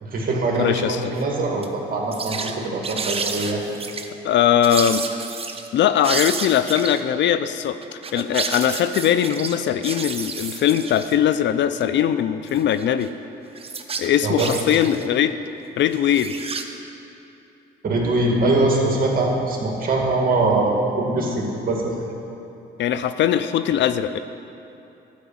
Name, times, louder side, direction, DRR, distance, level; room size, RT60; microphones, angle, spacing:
voice 1, 0.0-3.6 14.2-14.5 17.8-21.9, right 2 dB, 45° right, -1 dB, 2.1 m, -22 dB
voice 2, 0.6-1.0 4.2-5.1 5.7-13.1 14.0-15.4 15.8-16.5 22.8-24.2, left 10 dB, 65° left, 12 dB, 0.4 m, -20 dB
sound 1, 1.0-1.2 1.6-1.7 2.1-2.6 2.8-4.1 4.6-5.7 6.0-7.0 7.8-11.1 11.8-11.9 12.5-13.1 13.6-15.1 15.9-16.6, right 4 dB, 30° right, 0.7 m, -30 dB
11.5 x 5.1 x 7.2 m, 2.9 s
cardioid pair, 90°, 20 cm